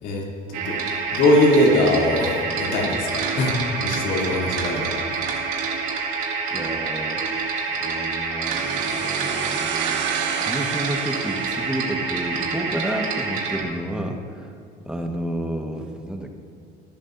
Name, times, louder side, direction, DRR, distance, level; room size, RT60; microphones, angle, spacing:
voice 1, 0.0-5.0, left 1 dB, 70° left, -3 dB, 3.1 m, -21 dB
sound 1, 0.5-13.6, right 4 dB, 85° right, 2.1 m, -27 dB
voice 2, 6.5-7.2 7.8-14.5 14.8-16.3, right 1 dB, 5° right, 2 dB, 1.5 m, -30 dB
sound 2, 8.5-12.3, right 8 dB, 65° right, 1.2 m, -31 dB
21.0 x 11.0 x 2.7 m, 2.4 s
supercardioid pair, 95°, 20 cm